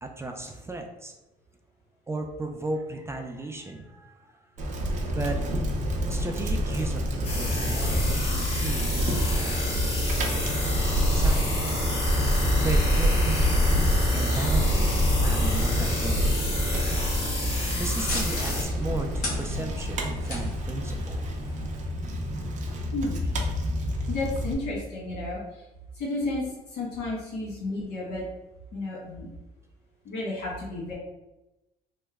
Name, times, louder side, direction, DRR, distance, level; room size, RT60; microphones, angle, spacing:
voice 1, 0.0-1.1 2.1-4.4 5.1-5.4 6.1-9.7 11.1-12.0 12.6-13.5 14.1-16.5 17.8-21.2 22.2-22.3 23.2-23.4, right 2 dB, 15° right, 3 dB, 0.3 m, -35 dB
Bicycle, 4.6-24.5, equal, 45° right, 0.6 m, -26 dB
sound 1, 7.2-18.6, left 2 dB, 35° left, 0.9 m, -32 dB
sound 2, 15.6-21.7, left 2 dB, 60° left, 1.0 m, -39 dB
voice 2, 22.9-23.2 24.1-25.6 25.9-28.2 28.7-29.3 30.0-30.9, left 2 dB, 80° left, -5 dB, 1.4 m, -32 dB
2.9 x 2.1 x 3.4 m, 1.0 s
cardioid pair, 110°, 17 cm